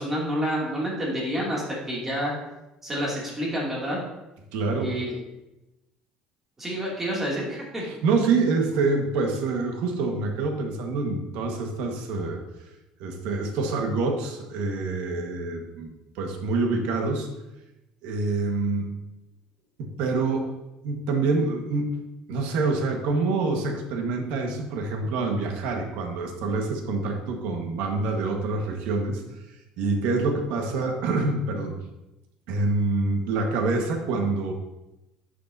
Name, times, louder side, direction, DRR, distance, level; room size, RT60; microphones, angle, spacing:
voice 1, 0.0-2.3 2.8-4.0 4.8-5.2 6.6-7.8, equal, 15° right, -4 dB, 2.5 m, -28 dB
voice 2, 4.5-4.9 7.8-12.4 13.0-15.9 16.1-17.3 18.0-18.9 19.8-20.4 20.8-22.0 22.3-29.2 29.8-31.8 32.5-34.5, right 3 dB, 75° right, 3 dB, 1.4 m, -26 dB
11.0 x 6.7 x 2.7 m, 0.97 s
cardioid pair, 155°, 2 cm